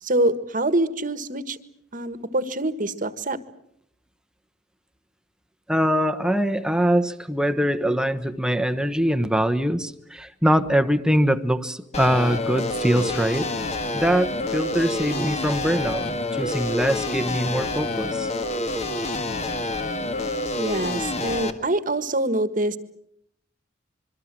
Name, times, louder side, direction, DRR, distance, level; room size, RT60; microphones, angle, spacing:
voice 1, 0.0-1.6 1.9-3.4 20.6-22.8, right 1 dB, 45° right, 13 dB, 1.5 m, -25 dB
voice 2, 5.7-13.5 13.9-18.3, equal, 5° right, 10 dB, 1.1 m, -23 dB
sound 1, 11.9-21.5, left 2 dB, 35° left, 1.8 m, -28 dB
26.0 x 23.5 x 7.6 m, 0.73 s
head